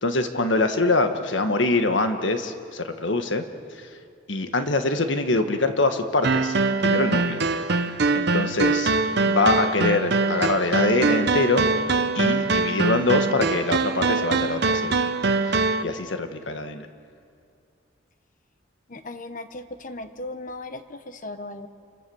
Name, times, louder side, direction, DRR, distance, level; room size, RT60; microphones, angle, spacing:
voice 1, 0.0-3.4 3.7-4.0 4.3-7.4 8.1-8.9 9.2-11.7 12.2-15.0 15.4-16.9, left 2 dB, 70° left, 7 dB, 1.6 m, -24 dB
sound 1, 6.2-15.8, right 3 dB, 60° right, 0.9 m, -23 dB
voice 2, 18.9-21.7, left 2 dB, 45° left, 9 dB, 1.3 m, -37 dB
29.0 x 24.5 x 7.1 m, 2.3 s
head